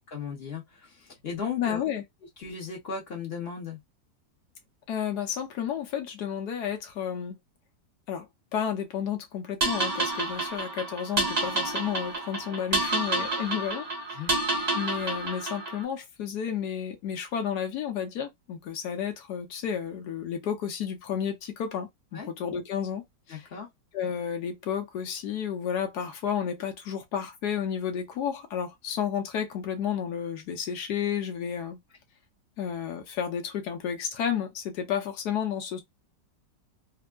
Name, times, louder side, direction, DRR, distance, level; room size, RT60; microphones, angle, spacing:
voice 1, 0.1-1.8 2.4-3.8 14.1-14.3 22.1-22.3 23.3-23.7, left 6 dB, 40° left, 1.0 m, -36 dB
voice 2, 1.6-2.0 4.9-7.4 8.1-8.3 8.5-13.9 14.1-14.2 14.7-23.5 23.9-31.8 32.6-35.8, left 8 dB, 65° left, 1.3 m, -31 dB
sound 1, 9.6-15.8, right 2 dB, 45° right, 0.5 m, -29 dB
3.4 x 2.1 x 2.2 m
omnidirectional pair, 2.0 m